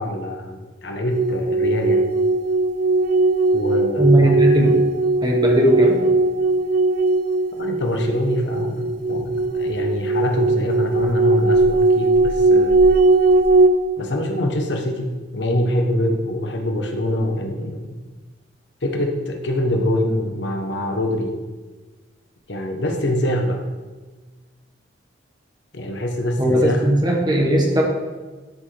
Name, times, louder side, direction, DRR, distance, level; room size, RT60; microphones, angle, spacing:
voice 1, 0.0-2.0 3.5-4.4 7.6-12.8 14.0-18.0 18.8-21.3 22.5-23.6 25.7-26.8, left 1 dB, 65° left, 3 dB, 1.1 m, -24 dB
sound 1, 1.1-13.7, right 2 dB, 45° right, 0.5 m, -18 dB
voice 2, 4.0-4.8 5.2-6.1 26.4-27.8, right 1 dB, 20° right, -1 dB, 1.4 m, -17 dB
12.5 x 6.1 x 3.4 m, 1.3 s
head